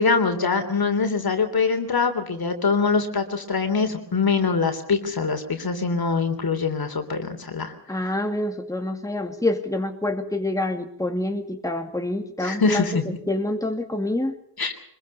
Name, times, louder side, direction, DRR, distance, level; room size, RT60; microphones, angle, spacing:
voice 1, 0.0-7.7 8.0-8.1 12.4-13.0 14.6-14.7, left 4 dB, 65° left, 7 dB, 3.4 m, -23 dB
voice 2, 7.9-13.0 13.3-14.4, left 1 dB, 10° left, 5 dB, 2.2 m, -26 dB
25.0 x 21.5 x 5.6 m, 0.65 s
wide cardioid pair, 100°, 39 cm